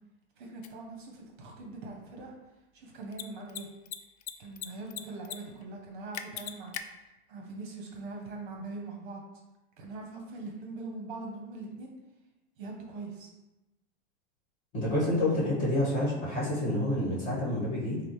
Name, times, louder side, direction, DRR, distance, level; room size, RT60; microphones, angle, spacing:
voice 1, 0.4-2.3 2.7-3.7 4.4-6.7 7.3-9.2 9.8-11.9 12.6-13.3, right 3 dB, 50° right, 1 dB, 0.8 m, -42 dB
Mechanisms, 0.6-0.7 3.0-3.2 3.5-3.6 3.9-4.7 4.9-5.4 5.6-5.7 6.1-6.8, left 10 dB, 75° left, 0.5 m, -37 dB
voice 2, 14.7-18.0, left 1 dB, 25° left, -7 dB, 1.4 m, -28 dB
5.9 x 2.0 x 3.0 m, 1.0 s
supercardioid pair, 160°, 33 cm